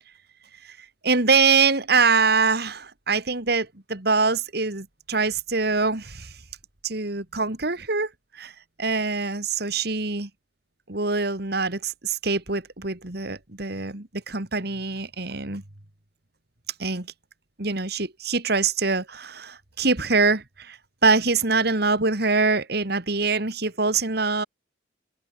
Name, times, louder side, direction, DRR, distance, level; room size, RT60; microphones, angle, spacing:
voice 1, 0.6-6.4 6.8-8.5 8.8-10.3 10.9-15.6 16.8-17.1 17.6-24.4, right 4 dB, 55° right, 2.5 m, -24 dB
head